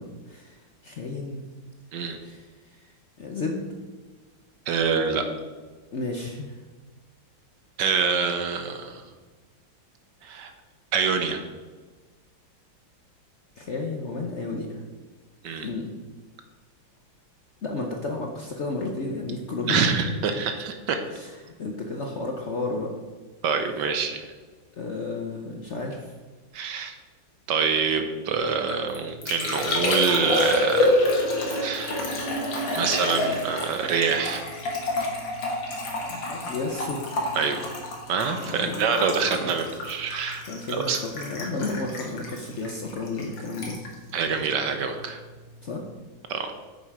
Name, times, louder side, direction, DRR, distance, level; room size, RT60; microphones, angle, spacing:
voice 1, 0.0-1.4 2.2-3.8 5.9-6.6 13.6-14.8 15.6-15.9 17.6-19.9 21.1-22.9 24.7-26.2 36.1-37.0 38.4-39.0 39.2-39.5 40.5-43.8 45.6-45.9, left 3 dB, 55° left, 2 dB, 0.8 m, -32 dB
voice 2, 4.7-5.2 7.8-9.0 10.2-10.5 10.9-11.4 15.4-15.7 19.7-21.0 23.4-24.2 26.5-26.9 27.5-31.0 31.6-32.0 32.7-34.4 37.4-37.6 38.1-41.0 44.1-45.2 46.3-46.5, right 6 dB, 70° right, 7 dB, 1.4 m, -26 dB
Liquid, 28.5-45.1 45.4-45.9, left 1 dB, 70° left, 2.4 m, -28 dB
8.8 x 6.8 x 4.8 m, 1.3 s
omnidirectional pair, 2.1 m